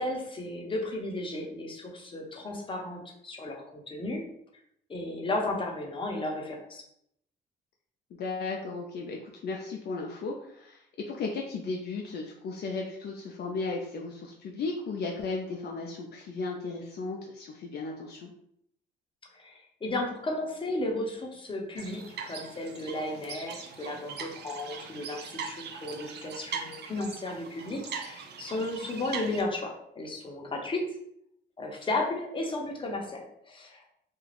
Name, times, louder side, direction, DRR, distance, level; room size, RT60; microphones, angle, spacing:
voice 1, 0.0-4.2 4.9-6.8 19.3-30.8 31.6-33.9, left 2 dB, 25° left, 0 dB, 0.7 m, -34 dB
voice 2, 8.1-18.3, left 3 dB, 55° left, 0 dB, 0.4 m, -35 dB
sound 1, 21.8-29.4, right 6 dB, 55° right, 0.5 m, -41 dB
2.4 x 2.2 x 3.2 m, 0.72 s
cardioid pair, 90°, 20 cm